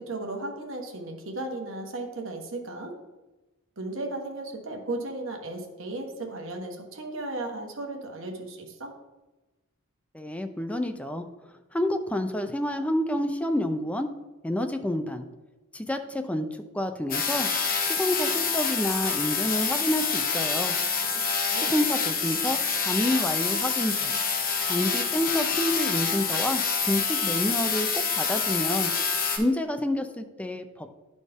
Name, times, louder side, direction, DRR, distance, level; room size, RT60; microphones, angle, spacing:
voice 1, 0.0-3.0 3.8-8.9 21.4-21.7, right 2 dB, 65° right, 2 dB, 1.2 m, -35 dB
voice 2, 10.1-11.2 11.7-14.1 14.4-15.3 15.7-16.5 16.7-17.5 17.8-20.7 21.5-24.2 24.6-28.9 29.4-30.9, left 1 dB, 5° left, 7 dB, 0.4 m, -28 dB
sound 1, 17.1-29.4, left 5 dB, 45° left, 1.1 m, -27 dB
11.0 x 4.2 x 3.5 m, 1.1 s
head